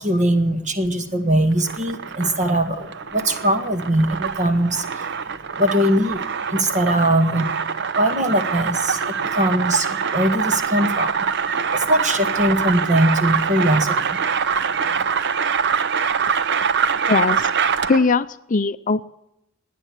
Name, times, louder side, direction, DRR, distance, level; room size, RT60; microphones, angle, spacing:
voice 1, 0.0-5.2 5.6-6.2 6.5-7.5 8.0-14.2, right 1 dB, 35° right, 7 dB, 1.8 m, -21 dB
sound 1, 1.5-18.1, right 6 dB, 60° right, 0.8 m, -24 dB
voice 2, 17.1-17.5 17.9-19.0, left 4 dB, 40° left, 12 dB, 0.6 m, -20 dB
17.5 x 10.0 x 8.0 m, 0.84 s
head